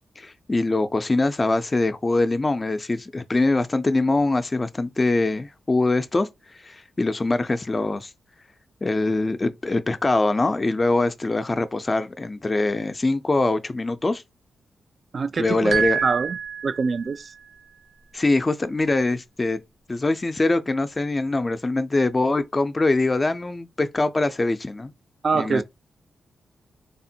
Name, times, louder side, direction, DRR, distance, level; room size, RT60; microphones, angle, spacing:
voice 1, 0.2-6.3 6.6-8.1 8.8-14.2 15.4-16.0 18.1-19.6 19.9-24.9 25.3-25.6, left 2 dB, 30° left, 0.3 m, -23 dB
voice 2, 15.1-16.4 16.6-17.3 25.2-25.6, right 4 dB, 55° right, 0.3 m, -25 dB
sound 1, 15.7-17.3, right 7 dB, 75° right, 0.8 m, -27 dB
3.3 x 2.1 x 2.6 m
cardioid pair, 60°, 0 cm